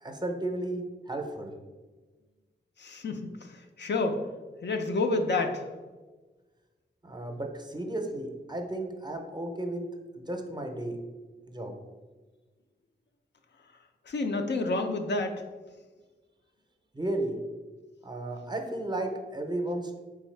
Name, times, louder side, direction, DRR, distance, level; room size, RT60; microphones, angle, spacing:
voice 1, 0.0-1.5 7.0-9.8 10.2-11.0 11.5-11.7 16.9-17.4 18.0-20.0, right 1 dB, 20° right, 3 dB, 0.6 m, -34 dB
voice 2, 2.8-4.2 4.6-5.6 14.1-15.4, left 3 dB, 65° left, 4 dB, 0.5 m, -29 dB
4.4 x 3.5 x 3.2 m, 1.3 s
wide cardioid pair, 85°, 19 cm